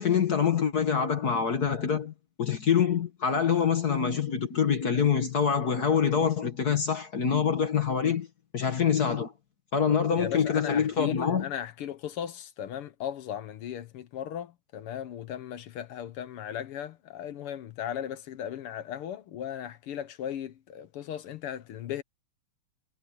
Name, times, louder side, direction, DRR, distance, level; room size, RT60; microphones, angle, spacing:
voice 1, 0.0-8.3 8.5-9.3 9.7-11.4, left 7 dB, 45° left, 1.3 m, -25 dB
voice 2, 10.2-22.0, left 10 dB, 65° left, 1.5 m, -37 dB
omnidirectional pair, 3.3 m